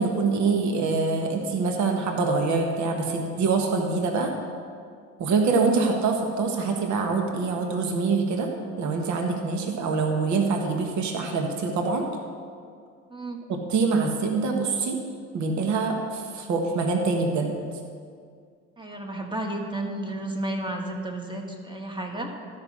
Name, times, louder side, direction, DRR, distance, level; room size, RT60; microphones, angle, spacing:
voice 1, 0.0-4.3 5.2-8.5 8.8-12.0 13.5-15.0 15.3-17.5, right 4 dB, 50° right, 3 dB, 1.5 m, -25 dB
voice 2, 18.8-22.3, right 1 dB, 10° right, 2 dB, 1.6 m, -32 dB
12.0 x 5.8 x 6.3 m, 2.2 s
hypercardioid pair, 80°, 37 cm